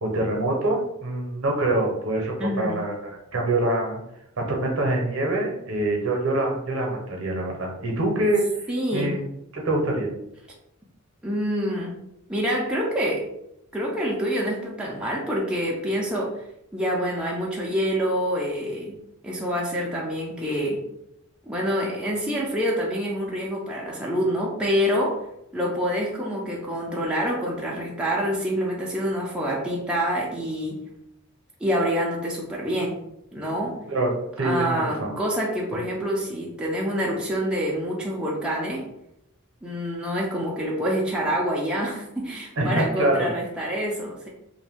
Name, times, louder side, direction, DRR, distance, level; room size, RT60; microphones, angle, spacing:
voice 1, 0.0-4.0 4.5-8.5 8.9-9.2 9.5-10.1 33.9-34.1 34.4-35.1 35.7-35.8 42.6-43.3, right 2 dB, 65° right, 0 dB, 0.7 m, -25 dB
voice 2, 2.4-2.8 8.7-9.2 11.2-12.0 12.3-13.3 13.7-16.3 16.7-18.9 19.2-20.8 21.4-25.2 25.5-30.8 31.6-33.0 33.3-33.8 34.4-38.9 39.6-44.3, equal, 5° right, -4 dB, 0.4 m, -26 dB
2.5 x 2.2 x 3.4 m, 0.81 s
head